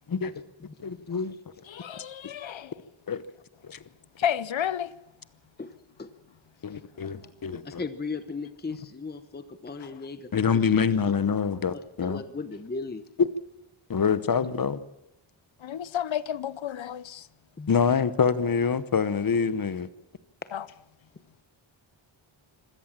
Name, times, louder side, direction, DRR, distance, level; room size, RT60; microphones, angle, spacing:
voice 1, 0.8-1.3 3.1-3.2 3.7-3.8 6.6-7.8 10.3-12.2 13.2-13.3 13.9-14.8 17.7-19.9, left 6 dB, 45° left, 1.0 m, -25 dB
voice 2, 1.7-2.7 4.2-4.9 7.0-7.1 9.8-9.9 15.6-17.3 20.5-20.7, left 10 dB, 70° left, 0.8 m, -31 dB
voice 3, 7.6-10.3 11.7-13.0 17.6-17.7, left 4 dB, 20° left, 0.9 m, -36 dB
25.5 x 16.5 x 7.4 m
wide cardioid pair, 165°, 49 cm